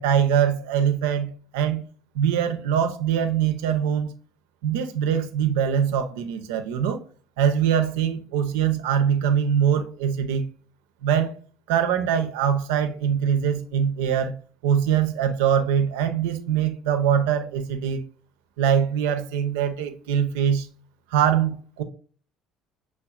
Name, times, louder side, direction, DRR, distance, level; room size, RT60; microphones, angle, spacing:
voice 1, 0.0-1.8 2.1-4.1 4.6-7.0 7.4-10.5 11.0-11.3 11.7-14.3 14.6-18.0 18.6-20.7 21.1-21.8, right 8 dB, 75° right, 0.4 m, -23 dB
5.8 x 2.3 x 2.3 m
hypercardioid pair, 60°, 0 cm